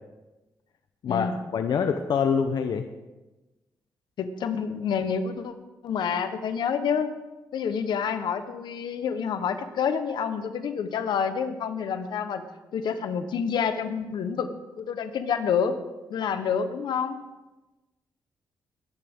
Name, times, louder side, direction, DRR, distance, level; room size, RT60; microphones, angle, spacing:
voice 1, 1.5-2.8, left 6 dB, 70° left, 7 dB, 0.8 m, -25 dB
voice 2, 4.2-5.5 5.8-7.1 7.5-12.4 12.7-14.5 14.8-15.7 16.1-17.2, left 7 dB, 85° left, 9 dB, 1.1 m, -28 dB
20.5 x 10.5 x 3.7 m, 1.1 s
cardioid pair, 95°, 7 cm